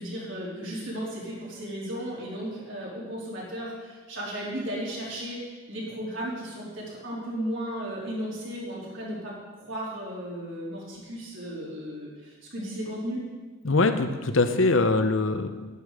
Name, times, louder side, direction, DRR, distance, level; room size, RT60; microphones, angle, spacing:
voice 1, 0.0-13.2, equal, 60° right, -5 dB, 4.0 m, -35 dB
voice 2, 13.6-15.5, left 3 dB, 65° left, 8 dB, 0.9 m, -22 dB
11.0 x 11.0 x 5.0 m, 1.3 s
head